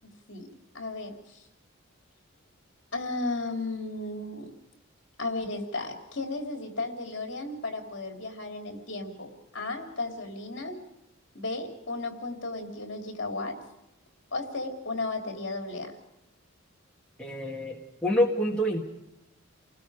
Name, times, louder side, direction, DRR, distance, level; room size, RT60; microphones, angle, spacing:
voice 1, 0.0-0.5 0.7-1.4 2.9-4.5 5.2-10.8 11.3-13.6 14.3-15.9, left 2 dB, 55° left, 3 dB, 3.3 m, -34 dB
voice 2, 17.2-18.8, equal, 5° left, -3 dB, 2.1 m, -27 dB
30.0 x 19.5 x 5.0 m, 0.87 s
head